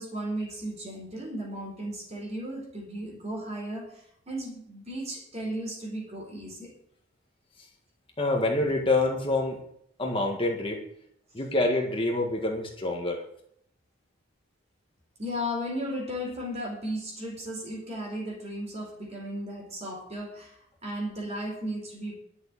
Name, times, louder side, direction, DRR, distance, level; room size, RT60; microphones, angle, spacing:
voice 1, 0.0-6.8 15.2-22.1, equal, 35° right, 1 dB, 4.1 m, -35 dB
voice 2, 8.2-9.6 10.0-10.8 11.3-13.2, left 2 dB, 25° left, 1 dB, 1.7 m, -26 dB
11.0 x 7.0 x 8.8 m, 0.70 s
head